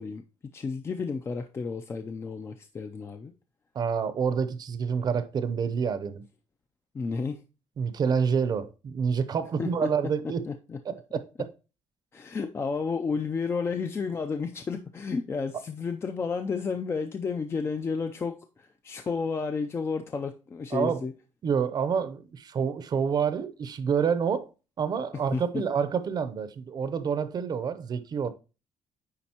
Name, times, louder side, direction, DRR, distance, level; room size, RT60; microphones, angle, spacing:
voice 1, 0.0-3.3 6.9-7.4 9.6-9.9 10.5-10.8 12.1-21.1 25.3-25.6, left 5 dB, 25° left, 0.4 m, -32 dB
voice 2, 3.7-6.2 7.8-10.4 10.9-11.5 20.7-21.0 21.4-24.5 24.8-28.3, right 6 dB, 40° right, 0.7 m, -28 dB
9.7 x 4.0 x 2.9 m
cardioid pair, 170°, 11 cm